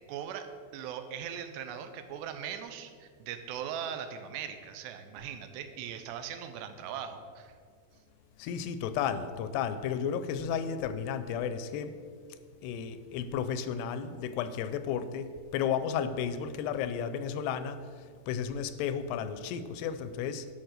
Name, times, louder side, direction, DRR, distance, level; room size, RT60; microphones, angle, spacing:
voice 1, 0.1-0.5 0.7-7.5, right 8 dB, 85° right, 8 dB, 2.8 m, -39 dB
voice 2, 8.4-11.9 12.6-20.5, left 8 dB, 85° left, 11 dB, 2.5 m, -33 dB
11.5 x 6.0 x 6.5 m, 2.1 s
omnidirectional pair, 4.9 m